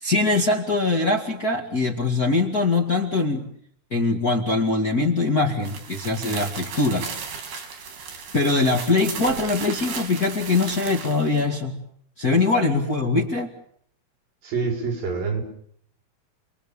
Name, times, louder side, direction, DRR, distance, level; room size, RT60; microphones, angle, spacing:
voice 1, 0.0-3.5 3.9-7.1 7.7-7.8 8.3-11.8 12.2-13.5, left 3 dB, 30° left, 1 dB, 2.1 m, -22 dB
sound 1, 5.6-11.4, right 5 dB, 85° right, 5.4 m, -35 dB
voice 2, 14.4-15.4, right 5 dB, 65° right, 2 dB, 6.8 m, -26 dB
30.0 x 22.5 x 7.1 m, 0.66 s
omnidirectional pair, 4.3 m